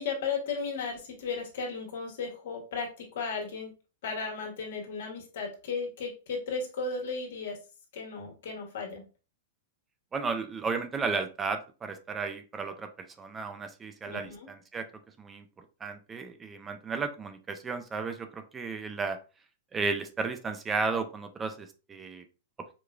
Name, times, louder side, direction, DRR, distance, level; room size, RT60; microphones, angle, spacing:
voice 1, 0.0-3.7 4.0-7.6 7.9-9.0 14.1-14.5, left 4 dB, 70° left, 0 dB, 1.4 m, -35 dB
voice 2, 10.1-14.9 15.2-19.2 19.7-22.2, right 4 dB, 15° right, 8 dB, 0.4 m, -34 dB
4.8 x 2.3 x 2.3 m, 0.33 s
hypercardioid pair, 150°, 0 cm